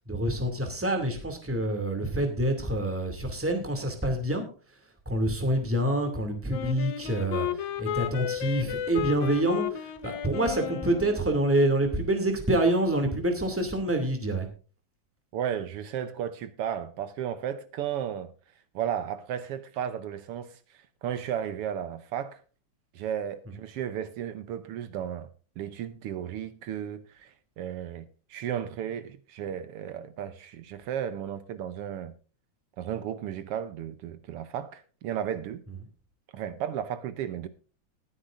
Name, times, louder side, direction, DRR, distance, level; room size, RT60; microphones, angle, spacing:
voice 1, 0.1-4.5 5.1-7.5 7.8-14.5, right 1 dB, 5° right, 2.0 m, -27 dB
Wind instrument woodwind instrument, 6.5-11.2, left 9 dB, 75° left, 2.4 m, -33 dB
voice 2, 15.3-18.3 18.7-22.4 22.9-25.3 25.6-32.2 32.8-35.6 36.3-37.5, right 9 dB, 75° right, 1.4 m, -34 dB
19.5 x 9.8 x 2.6 m
omnidirectional pair, 3.4 m